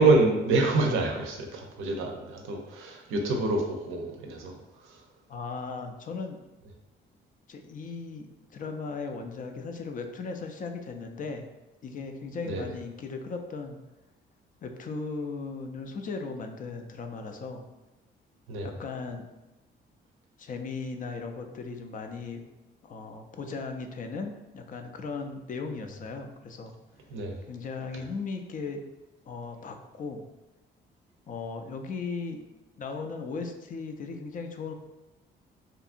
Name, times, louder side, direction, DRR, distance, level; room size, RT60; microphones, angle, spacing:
voice 1, 0.0-5.0 12.4-12.7 18.5-18.7 27.1-27.4, right 3 dB, 90° right, 2 dB, 0.6 m, -26 dB
voice 2, 5.3-6.4 7.5-11.5 11.8-13.8 14.6-17.7 18.6-19.3 20.4-22.4 22.8-26.7 27.5-28.8 29.3-30.2 31.3-32.4 32.8-34.7, left 4 dB, 45° left, 5 dB, 0.4 m, -37 dB
2.7 x 2.5 x 2.4 m, 1.0 s
cardioid pair, 90°, 20 cm